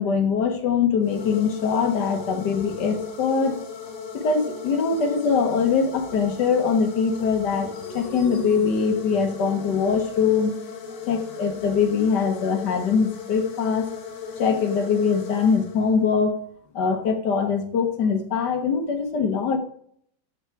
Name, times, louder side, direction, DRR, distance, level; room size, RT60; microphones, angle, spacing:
voice 1, 0.0-3.6 4.1-10.5 11.1-13.9 14.4-16.4 16.7-19.6, left 5 dB, 70° left, 5 dB, 1.6 m, -22 dB
sound 1, 1.0-16.2, left 5 dB, 45° left, 1.2 m, -37 dB
14.0 x 4.7 x 4.6 m, 0.63 s
omnidirectional pair, 2.0 m